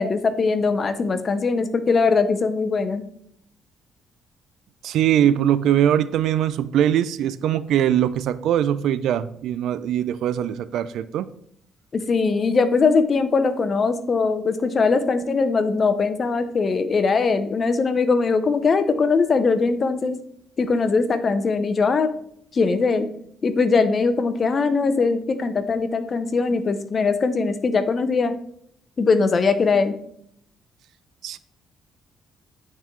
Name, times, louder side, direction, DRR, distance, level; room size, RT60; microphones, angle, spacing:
voice 1, 0.0-3.0 11.9-20.2 20.6-22.1 22.5-23.1 23.4-28.4 29.0-30.0, left 4 dB, 40° left, 10 dB, 0.6 m, -21 dB
voice 2, 4.8-11.3 31.2-31.4, right 10 dB, 80° right, 15 dB, 0.3 m, -21 dB
9.1 x 3.6 x 3.1 m, 0.68 s
cardioid pair, 110°, 0 cm